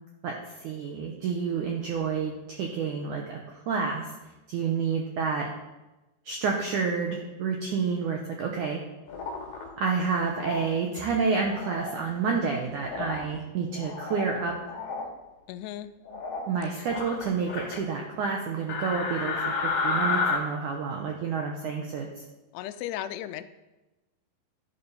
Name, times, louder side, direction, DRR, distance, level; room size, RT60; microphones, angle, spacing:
voice 1, 0.2-4.0 4.5-5.5 6.3-8.8 9.8-14.6 16.5-22.1, right 5 dB, 80° right, 1 dB, 1.8 m, -29 dB
sound 1, 9.1-9.6 10.4-10.7 11.4-12.0 12.8-13.3 13.7-14.3 14.6-15.1 16.1-16.5 16.9-17.8 18.7-20.4, left 4 dB, 55° left, 2.7 m, -31 dB
voice 2, 15.5-15.9 16.7-16.9 22.5-23.4, left 12 dB, 85° left, 12 dB, 2.6 m, -36 dB
11.0 x 11.0 x 4.1 m, 1.1 s
omnidirectional pair, 4.9 m